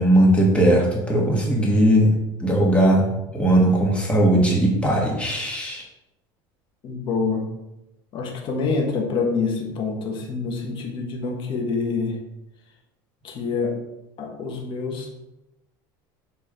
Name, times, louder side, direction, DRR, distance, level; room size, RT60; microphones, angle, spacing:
voice 1, 0.0-3.1 3.3-5.8, right 1 dB, 10° left, -2 dB, 1.8 m, -18 dB
voice 2, 6.8-7.5 8.1-12.2 13.2-13.8 14.2-15.1, left 4 dB, 45° left, 1 dB, 1.5 m, -26 dB
8.0 x 3.2 x 3.7 m, 0.92 s
supercardioid pair, 110°, 11 cm